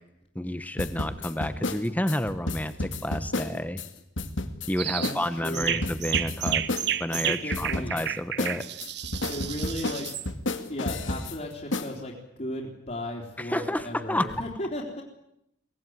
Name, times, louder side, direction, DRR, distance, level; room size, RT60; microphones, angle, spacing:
voice 1, 0.3-3.8 4.7-6.7 7.0-8.7 13.4-14.4, left 1 dB, 10° left, 11 dB, 1.1 m, -30 dB
sound 1, 0.8-3.9 4.2-4.7 5.0-5.2 5.4-7.2 7.5-8.1 8.4-11.4 11.7-11.9, left 2 dB, 90° left, 2.1 m, -31 dB
sound 2, 4.8-5.1 5.5-10.3, right 11 dB, 60° right, 1.0 m, -31 dB
voice 2, 5.0-5.8 7.1-7.9 9.3-10.1 10.7-12.1 12.4-15.0, left 1 dB, 40° left, -2 dB, 3.7 m, -35 dB
23.5 x 19.0 x 9.5 m, 0.83 s
head